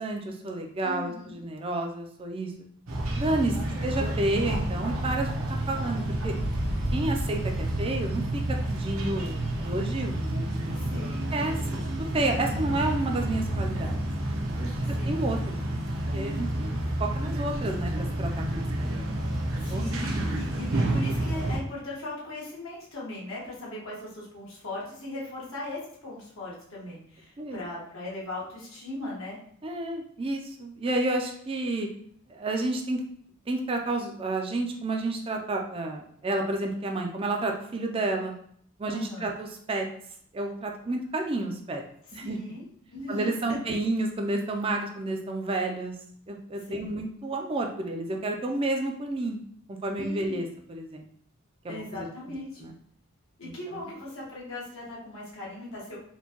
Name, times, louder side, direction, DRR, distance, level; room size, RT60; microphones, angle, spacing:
voice 1, 0.0-2.5 3.1-3.6 3.8-5.3 5.7-6.3 6.9-8.4 8.7-10.2 10.9-11.0 11.3-11.8 12.1-14.0 14.6-15.6 16.1-19.1 19.7-19.8 27.4-27.6 29.6-31.9 32.3-33.0 33.5-38.3 38.8-39.9 40.3-41.8 42.1-42.4 43.1-46.0 46.3-49.4 49.7-51.0 51.6-52.1 52.6-52.7 53.4-53.5, right 2 dB, 25° right, 2 dB, 0.3 m, -30 dB
voice 2, 0.8-1.4 3.6-3.9 10.7-11.3 12.5-12.9 14.9-15.2 16.4-16.8 19.6-29.4 38.9-39.3 42.2-42.7 42.9-43.4 46.7-46.9 50.0-50.5 51.7-52.7 53.4-56.0, left 2 dB, 80° left, -6 dB, 1.4 m, -39 dB
sound 1, 2.9-21.6, right 1 dB, 80° right, 0.7 m, -29 dB
4.3 x 2.2 x 2.9 m, 0.63 s
head